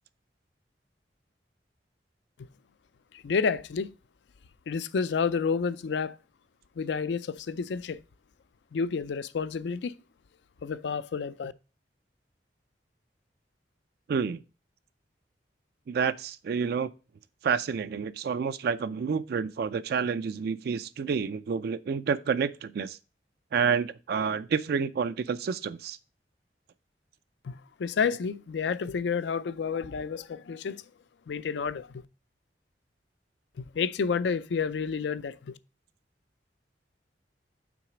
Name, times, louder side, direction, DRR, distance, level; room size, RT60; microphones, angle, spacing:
voice 1, 3.2-3.9 4.7-6.2 6.8-8.0 8.7-9.9 10.6-11.5 27.4-30.8 31.3-32.0 33.6-35.5, left 5 dB, 70° left, 0.4 m, -30 dB
voice 2, 14.1-14.4 15.9-16.9 17.4-23.0 23.5-26.0, right 6 dB, 60° right, 0.3 m, -29 dB
6.0 x 4.0 x 5.8 m
head